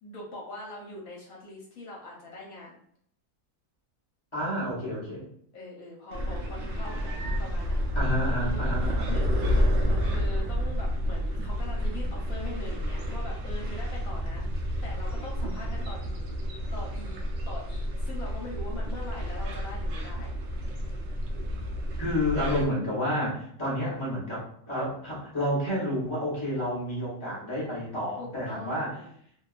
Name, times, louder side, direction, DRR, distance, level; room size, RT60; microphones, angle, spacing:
voice 1, 0.0-2.8 5.5-8.0 8.4-14.4 14.8-16.2 16.7-20.3 28.2-29.1, left 2 dB, 65° left, -2 dB, 1.0 m, -42 dB
voice 2, 4.3-5.3 7.9-9.1 22.0-29.0, equal, 30° left, -5 dB, 0.5 m, -30 dB
sound 1, 6.1-22.7, equal, 80° right, 0.6 m, -30 dB
2.7 x 2.2 x 2.3 m, 0.66 s
omnidirectional pair, 1.8 m